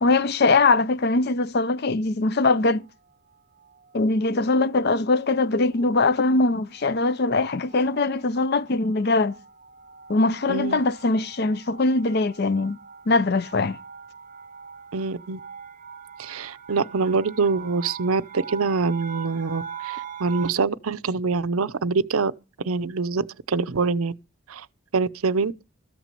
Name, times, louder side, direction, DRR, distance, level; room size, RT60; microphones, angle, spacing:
voice 1, 0.0-2.8 3.9-9.4 10.1-12.8 13.1-13.8, left 3 dB, 50° left, 0.6 m, -22 dB
sound 1, 2.4-2.9 3.6-4.0 4.3-4.5 4.7-20.5, right 7 dB, 35° right, 0.6 m, -42 dB
voice 2, 10.5-10.8 14.9-15.4 16.2-22.3 22.6-24.1 24.5-24.7 24.9-25.6, right 4 dB, 85° right, 0.6 m, -25 dB
14.0 x 6.1 x 6.8 m
head